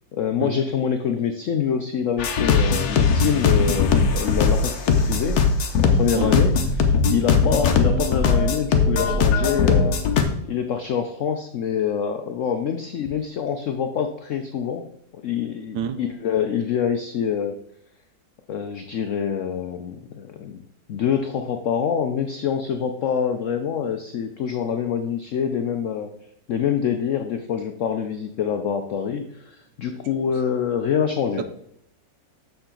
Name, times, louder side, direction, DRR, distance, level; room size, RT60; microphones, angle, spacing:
voice 1, 0.1-5.4 5.8-6.6 7.1-10.0 10.5-14.8 15.2-17.5 18.5-20.6 20.9-26.1 26.5-31.4, left 7 dB, 80° left, 6 dB, 0.6 m, -25 dB
sound 1, 2.2-10.2, left 5 dB, 60° left, 1.3 m, -19 dB
voice 2, 6.1-6.5 15.7-16.0 29.8-29.9 31.4-31.5, right 8 dB, 75° right, 10 dB, 1.3 m, -28 dB
7.0 x 6.7 x 3.8 m, 0.72 s
omnidirectional pair, 2.0 m